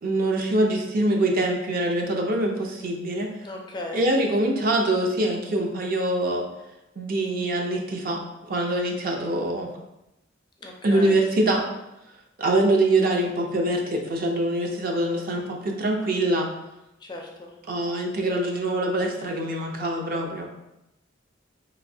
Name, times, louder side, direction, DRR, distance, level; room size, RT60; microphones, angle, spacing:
voice 1, 0.0-3.3 3.9-6.4 7.0-8.2 8.5-9.7 10.8-11.6 12.4-16.5 17.7-20.5, right 1 dB, 50° right, 1 dB, 0.5 m, -24 dB
voice 2, 3.4-4.0 10.6-11.1 17.0-17.5, left 2 dB, 25° left, 0 dB, 0.4 m, -36 dB
3.0 x 2.6 x 2.7 m, 0.90 s
head